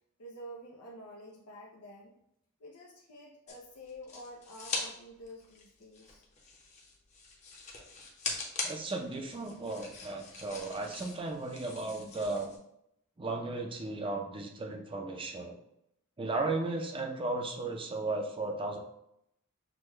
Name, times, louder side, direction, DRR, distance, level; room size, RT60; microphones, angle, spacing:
voice 1, 0.2-2.1 2.6-6.3, equal, 80° left, -4 dB, 0.7 m, -49 dB
sound 1, 3.5-4.9 5.2-12.6, left 3 dB, 30° left, 0.8 m, -42 dB
voice 2, 8.6-12.5 13.2-15.6 16.2-18.8, right 2 dB, 25° right, 2 dB, 0.5 m, -35 dB
6.2 x 2.2 x 3.2 m, 0.78 s
head